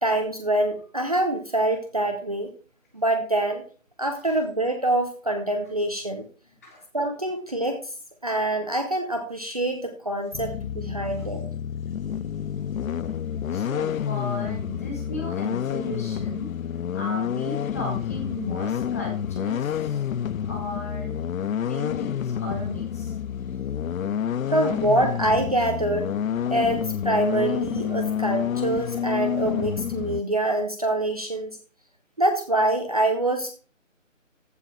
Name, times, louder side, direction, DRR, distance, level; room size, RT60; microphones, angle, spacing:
voice 1, 0.0-2.5 2.9-3.6 4.0-6.2 6.9-7.8 8.2-11.4 24.5-26.1 26.5-31.6 32.2-33.5, right 1 dB, 30° right, 4 dB, 0.9 m, -25 dB
sound 1, 10.3-30.2, left 9 dB, 80° left, 0.5 m, -29 dB
voice 2, 13.5-16.5 16.9-20.0 20.5-21.1 21.7-23.2, left 2 dB, 10° left, -1 dB, 1.6 m, -35 dB
14.5 x 4.9 x 4.2 m, 0.39 s
figure-of-eight pair, 170°, 40 cm